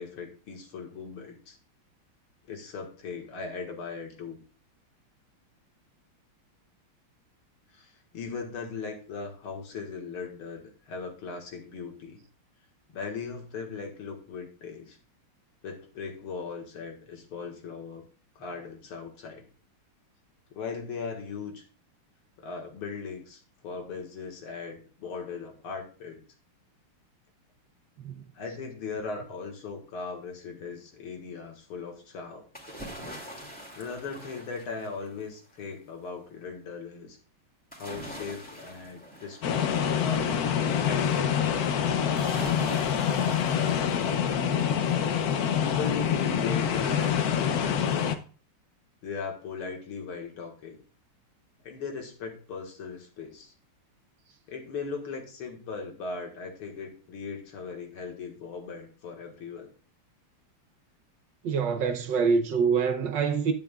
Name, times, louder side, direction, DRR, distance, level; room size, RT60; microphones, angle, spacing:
voice 1, 0.0-1.6 2.5-4.4 7.7-12.2 12.9-15.0 15.6-18.0 18.4-19.4 20.5-21.6 22.4-26.2 28.3-32.5 33.7-37.2 37.8-40.3 40.8-42.3 45.6-48.1 49.0-50.8 51.6-53.5 54.5-59.7, left 5 dB, 80° left, 2.6 m, -38 dB
sound 1, 32.5-35.4 37.7-40.3 42.2-44.4 44.9-45.0, equal, 5° left, 2.3 m, -43 dB
sound 2, 39.4-48.2, left 8 dB, 60° left, 1.0 m, -26 dB
voice 2, 61.4-63.5, right 5 dB, 65° right, 1.4 m, -25 dB
9.9 x 9.3 x 2.4 m
omnidirectional pair, 2.4 m